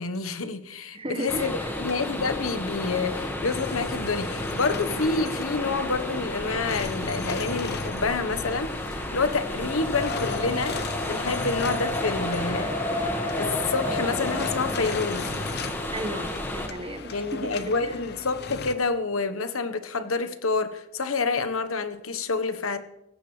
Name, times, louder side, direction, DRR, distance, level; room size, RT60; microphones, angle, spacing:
voice 1, 0.0-12.7 13.4-15.3 17.1-22.8, left 4 dB, 90° left, 10 dB, 1.2 m, -28 dB
voice 2, 0.9-1.7 15.9-18.0, right 1 dB, 25° right, 7 dB, 1.3 m, -35 dB
sound 1, 1.3-16.7, left 1 dB, 10° left, 1.6 m, -32 dB
sound 2, 1.8-18.7, left 4 dB, 50° left, 0.8 m, -38 dB
Race car auto racing, 7.9-18.9, left 2 dB, 35° left, 1.4 m, -35 dB
18.0 x 16.0 x 3.3 m, 0.89 s
head